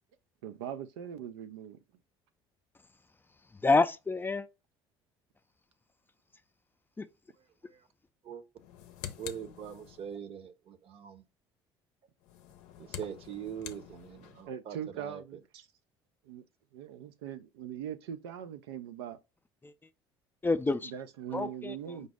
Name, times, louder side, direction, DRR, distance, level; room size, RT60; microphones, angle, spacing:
voice 1, 0.4-1.8 14.5-15.7 16.2-16.4 16.7-19.2 20.8-22.1, right 9 dB, 85° right, 0.4 m, -41 dB
voice 2, 3.6-4.5 7.0-7.1 19.6-19.7 20.4-20.9 21.3-21.7, left 3 dB, 15° left, 0.4 m, -27 dB
sound 1, 8.6-10.2 12.2-14.5, left 11 dB, 70° left, 0.6 m, -47 dB
voice 3, 9.2-11.2 12.8-15.2, right 8 dB, 50° right, 0.8 m, -42 dB
5.2 x 2.0 x 4.8 m
hypercardioid pair, 70°, 13 cm